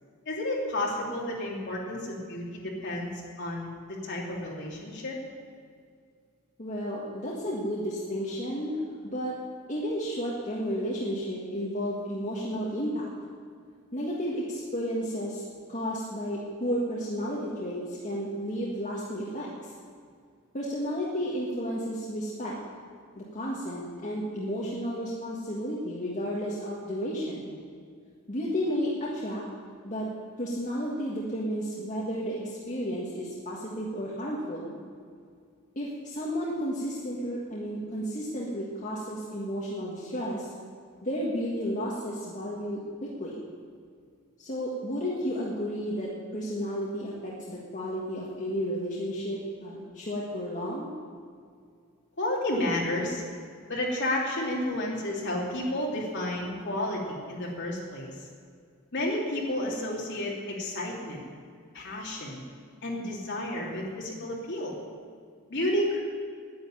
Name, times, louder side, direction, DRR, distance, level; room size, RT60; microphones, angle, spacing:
voice 1, 0.2-3.1 3.4-5.2 52.2-53.2 53.7-58.1 58.9-61.2 61.7-62.4 62.8-64.7 65.5-66.0, left 1 dB, 55° left, -3 dB, 3.0 m, -31 dB
voice 2, 6.6-8.8 9.1-9.4 9.7-13.1 13.9-15.4 15.7-19.7 20.5-22.5 23.1-27.5 28.3-29.4 29.8-30.1 30.4-34.7 35.7-40.5 41.0-43.4 44.4-50.9, equal, 35° left, -5 dB, 1.7 m, -32 dB
10.5 x 9.8 x 8.7 m, 2.2 s
head